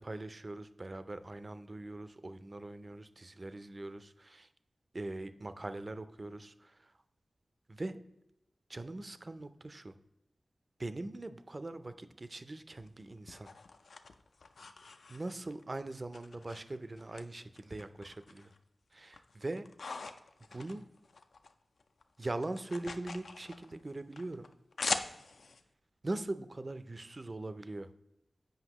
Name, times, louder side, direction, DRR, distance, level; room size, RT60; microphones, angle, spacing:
voice 1, 0.0-4.5 4.9-6.9 7.7-8.0 8.7-9.9 10.8-13.5 15.1-18.5 18.9-19.7 20.5-20.8 22.2-24.5 26.0-27.9, right 2 dB, 40° right, 12 dB, 0.4 m, -41 dB
sound 1, 12.8-15.6 16.1-17.2 17.5-18.6 18.9-21.5 21.8-25.6, left 4 dB, 80° left, 0.4 m, -42 dB
7.9 x 5.3 x 2.9 m, 0.92 s
cardioid pair, 50°, 0 cm